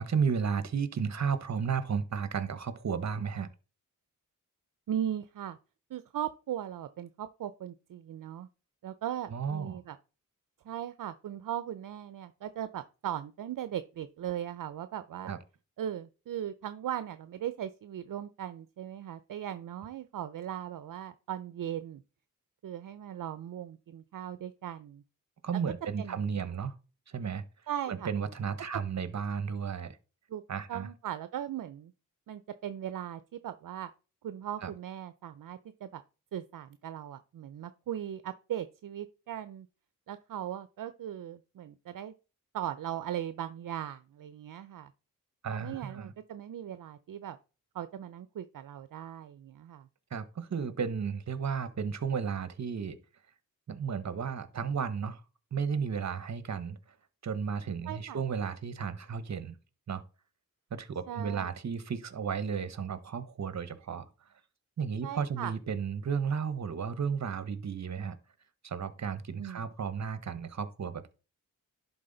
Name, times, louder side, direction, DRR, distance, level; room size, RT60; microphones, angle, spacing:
voice 1, 0.0-3.5 9.3-9.8 15.2-15.4 25.4-26.7 27.1-27.4 27.9-30.0 30.5-30.9 34.6-34.7 45.4-46.1 50.1-53.0 53.7-55.2 55.5-56.8 57.2-59.6 59.9-60.0 60.7-64.1 64.8-68.2 68.6-71.1, right 6 dB, 55° right, 0.9 m, -33 dB
voice 2, 4.9-5.6 5.9-8.5 8.8-10.0 10.6-15.3 15.8-22.0 22.6-25.0 26.0-26.5 27.7-28.1 30.3-30.4 30.7-31.9 32.3-33.9 34.2-36.0 36.3-39.7 40.1-42.1 42.5-44.9 45.5-47.4 47.7-49.9 57.9-58.2 61.1-61.5 65.0-65.5 69.4-69.6, right 10 dB, 70° right, 0.5 m, -38 dB
11.0 x 4.0 x 3.8 m
cardioid pair, 75°, 33 cm